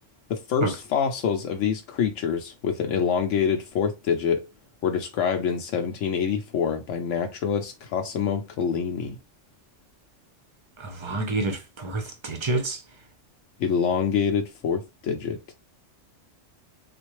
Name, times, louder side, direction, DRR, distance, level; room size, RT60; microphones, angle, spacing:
voice 1, 0.3-4.5 4.8-9.2 13.6-15.5, left 7 dB, 80° left, 0.9 m, -26 dB
voice 2, 11.0-12.8, right 2 dB, 30° right, 0.5 m, -27 dB
3.6 x 2.5 x 3.0 m
omnidirectional pair, 1.3 m